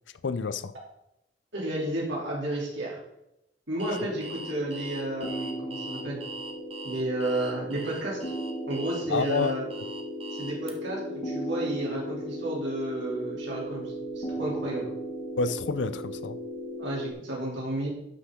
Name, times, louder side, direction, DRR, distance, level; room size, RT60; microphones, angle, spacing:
voice 1, 0.2-0.7 9.1-9.6 15.4-16.4, left 4 dB, 80° left, 0.5 m, -29 dB
voice 2, 1.5-3.0 3.7-6.2 6.8-8.2 8.7-9.6 10.3-14.9 16.8-17.9, right 1 dB, 75° right, 3.2 m, -32 dB
Alarm, 3.8-10.7, right 3 dB, 30° right, 1.0 m, -42 dB
sound 1, 3.9-17.1, equal, 40° left, 1.5 m, -36 dB
12.0 x 5.7 x 3.8 m
head